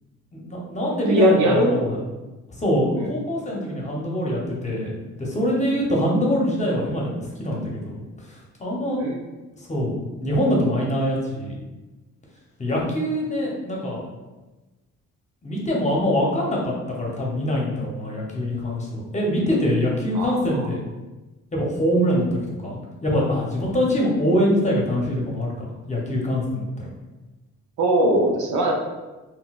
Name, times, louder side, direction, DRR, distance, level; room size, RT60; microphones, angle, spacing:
voice 1, 0.3-1.9 2.6-8.0 8.3-9.0 9.7-9.9 10.2-11.6 12.6-14.0 15.4-20.8 21.5-26.9, equal, 25° left, -2 dB, 0.8 m, -24 dB
voice 2, 1.1-1.9 3.0-3.1 9.0-9.2 20.1-20.4 27.8-28.7, right 1 dB, 75° right, 0 dB, 0.7 m, -20 dB
3.8 x 2.2 x 2.3 m, 1.1 s
cardioid pair, 90°, 30 cm